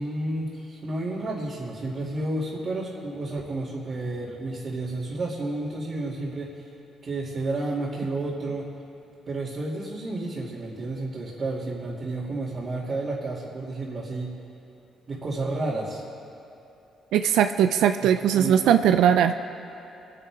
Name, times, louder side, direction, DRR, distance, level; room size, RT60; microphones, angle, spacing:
voice 1, 0.0-6.5 7.0-8.7 9.3-14.3 15.1-16.0 18.3-18.7, right 2 dB, 45° right, -7 dB, 2.5 m, -31 dB
voice 2, 17.1-19.3, right 9 dB, 85° right, 8 dB, 0.4 m, -20 dB
23.0 x 9.8 x 3.6 m, 2.8 s
cardioid pair, 90°, 0 cm